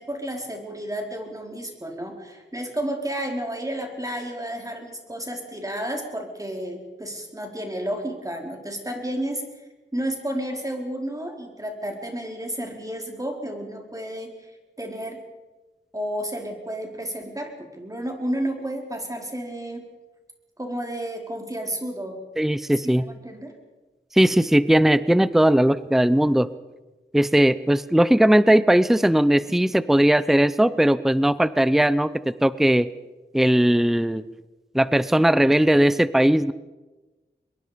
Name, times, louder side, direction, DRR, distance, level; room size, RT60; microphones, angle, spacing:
voice 1, 0.0-14.5 14.8-15.2 15.9-19.8 20.6-22.2 22.8-23.5, right 1 dB, 20° right, 1 dB, 4.6 m, -31 dB
voice 2, 22.4-23.1 24.1-26.5 27.1-32.1 32.4-32.9 33.3-34.2 34.7-36.5, right 1 dB, ahead, 16 dB, 0.7 m, -18 dB
25.0 x 22.0 x 5.3 m, 1.2 s
wide cardioid pair, 65°, 19 cm